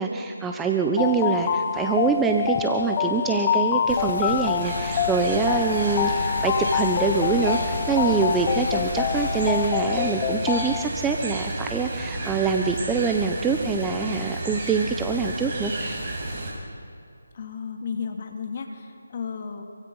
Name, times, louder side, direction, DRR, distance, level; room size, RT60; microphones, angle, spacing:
voice 1, 0.0-16.0, right 5 dB, 5° right, 3 dB, 0.9 m, -25 dB
sound 1, 1.0-10.9, left 8 dB, 20° left, 1.0 m, -26 dB
sound 2, 3.9-9.7, left 1 dB, 60° left, 3.2 m, -34 dB
sound 3, 4.6-16.5, right 2 dB, 30° right, 6.2 m, -32 dB
voice 2, 17.3-19.6, left 6 dB, 40° left, 4 dB, 2.6 m, -33 dB
26.5 x 24.0 x 5.6 m, 2.5 s
figure-of-eight pair, 160°, 0 cm